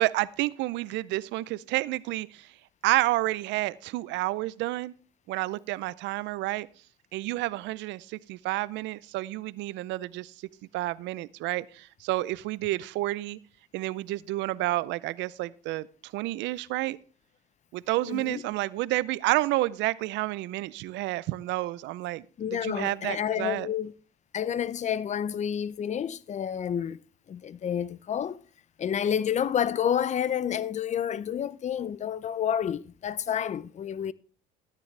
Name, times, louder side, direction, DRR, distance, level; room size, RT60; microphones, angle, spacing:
voice 1, 0.0-2.5 2.8-4.9 5.3-6.7 7.1-10.3 10.7-13.4 13.7-15.9 16.1-17.0 17.7-23.7, right 18 dB, 70° right, 0.5 m, -30 dB
voice 2, 18.1-18.4 22.4-23.9 24.3-27.0 27.3-28.4 28.8-34.1, left 9 dB, 35° left, 0.6 m, -29 dB
13.0 x 9.9 x 3.3 m
supercardioid pair, 90°, 20 cm